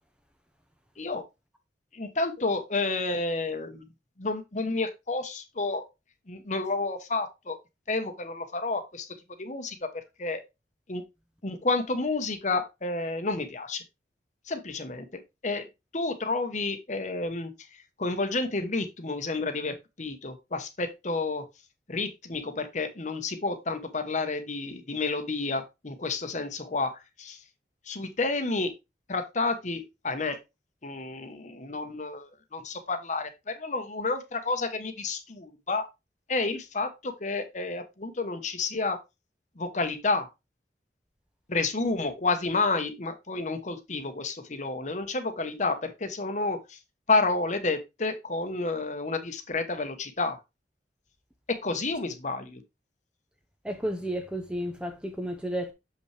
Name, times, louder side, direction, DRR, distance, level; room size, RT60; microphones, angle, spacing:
voice 1, 1.9-3.9 4.2-5.8 6.3-7.6 7.9-9.1 9.4-10.4 10.9-11.0 11.4-13.8 14.5-15.6 15.9-21.4 21.9-27.4 27.9-28.7 29.1-30.4 30.8-35.9 36.3-39.0 39.6-40.3 41.5-46.8 47.1-50.4 51.5-52.6, left 3 dB, 45° left, 1.1 m, -30 dB
voice 2, 53.6-55.7, equal, 5° right, 0.8 m, -32 dB
7.2 x 5.4 x 3.3 m
head